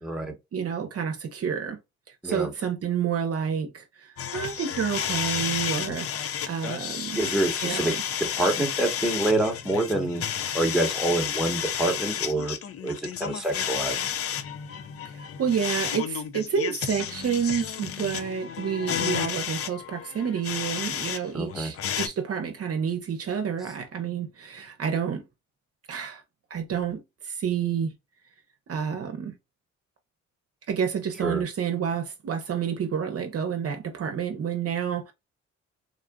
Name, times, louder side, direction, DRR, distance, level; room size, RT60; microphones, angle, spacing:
voice 1, 0.0-0.3 2.2-2.5 7.2-7.9 8.4-10.2 10.5-12.6 12.8-14.0 21.3-21.7 31.2-31.4, right 2 dB, ahead, 1.0 m, -26 dB
voice 2, 0.5-1.8 2.2-7.2 7.6-8.0 15.0-25.2 25.9-26.2 26.5-27.9 28.7-29.3 30.7-35.1, right 7 dB, 50° right, 0.8 m, -29 dB
sound 1, 4.2-21.2 21.5-22.1, left 9 dB, 50° left, 0.5 m, -31 dB
3.7 x 2.4 x 2.2 m
cardioid pair, 90°, 30 cm